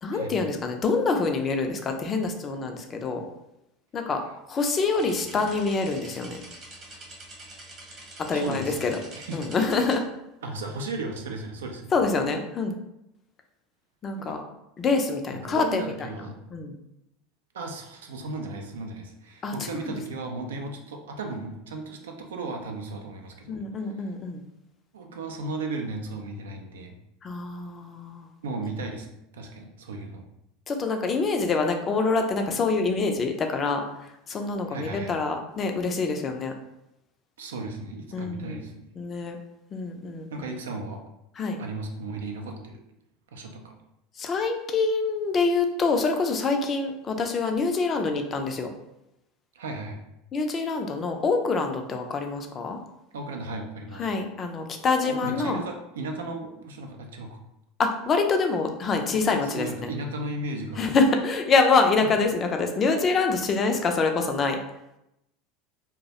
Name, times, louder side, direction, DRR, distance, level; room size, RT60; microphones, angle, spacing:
voice 1, 0.0-3.3 3.9-6.4 8.2-9.0 9.3-10.1 11.9-12.8 14.0-14.4 14.8-15.9 16.5-16.7 19.4-19.9 23.5-24.4 27.2-28.3 30.7-33.8 34.3-36.5 38.1-38.6 39.0-39.4 39.7-40.3 41.4-41.6 44.2-48.7 50.3-52.8 54.0-55.6 57.8-59.9 60.8-64.6, left 4 dB, 35° left, 4 dB, 0.4 m, -26 dB
sound 1, 4.9-10.0, right 1 dB, 35° right, 0.9 m, -45 dB
voice 2, 8.3-9.5 10.4-11.9 14.2-14.4 15.3-16.4 17.5-23.6 24.9-27.0 28.4-29.1 29.3-30.3 34.7-35.2 37.4-38.9 40.3-41.0 41.6-42.8 43.3-43.7 49.5-50.0 53.1-54.1 55.0-57.4 59.4-60.9 62.0-62.1, right 2 dB, 75° right, 3 dB, 0.3 m, -35 dB
2.2 x 2.0 x 2.7 m, 0.85 s
hypercardioid pair, 80°, 0 cm